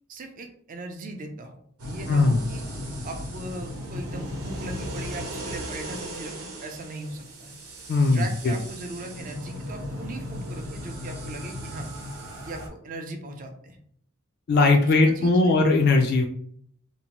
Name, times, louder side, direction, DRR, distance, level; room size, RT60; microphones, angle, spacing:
voice 1, 0.1-2.6 3.0-7.6 8.1-11.9 12.4-13.8 14.7-15.5, right 2 dB, 35° right, 5 dB, 0.4 m, -39 dB
sound 1, 1.8-12.7, equal, 70° right, 0.8 m, -36 dB
voice 2, 2.1-2.4 7.9-8.6 14.5-16.3, left 3 dB, 45° left, 3 dB, 0.3 m, -19 dB
2.7 x 2.1 x 2.9 m, 0.64 s
head